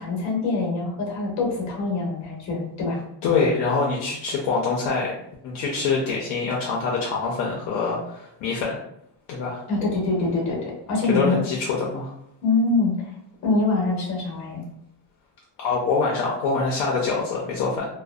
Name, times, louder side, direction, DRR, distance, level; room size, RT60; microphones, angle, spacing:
voice 1, 0.0-3.0 9.7-11.4 12.4-12.9 13.4-14.6, left 3 dB, 35° left, -2 dB, 0.8 m, -24 dB
voice 2, 3.2-5.1 5.4-8.8 9.3-9.6 11.1-12.1 15.6-17.9, left 4 dB, 60° left, -3 dB, 0.5 m, -24 dB
2.5 x 2.1 x 2.3 m, 0.76 s
cardioid pair, 165°, 48 cm